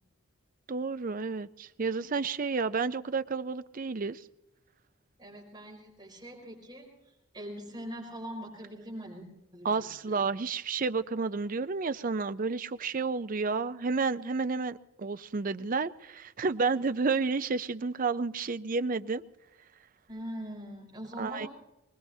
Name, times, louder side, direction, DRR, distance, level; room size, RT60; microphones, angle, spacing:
voice 1, 0.7-4.2 9.6-19.2 21.2-21.5, right 4 dB, 40° right, 0.5 m, -31 dB
voice 2, 5.2-6.9 7.3-9.2 9.5-10.2 20.1-21.5, equal, 20° right, 5.1 m, -42 dB
23.5 x 20.0 x 2.8 m
head